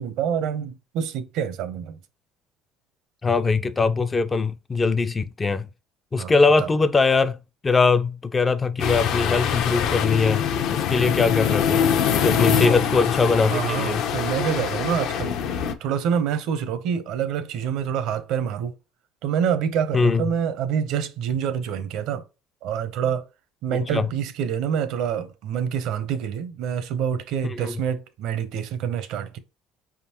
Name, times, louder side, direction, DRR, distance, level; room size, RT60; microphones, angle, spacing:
voice 1, 0.0-2.0 6.2-6.3 6.6-6.7 12.6-13.1 13.4-18.7 19.2-22.2 22.6-23.3 23.6-29.4, right 8 dB, 70° right, 0.7 m, -27 dB
voice 2, 3.2-5.7 6.1-7.4 7.6-11.8 12.2-14.0 19.9-20.2 23.9-24.1 27.5-27.7, left 4 dB, 20° left, 0.3 m, -21 dB
sound 1, 8.8-15.7, left 8 dB, 65° left, 0.6 m, -24 dB
4.9 x 3.6 x 2.9 m
cardioid pair, 135°, 0 cm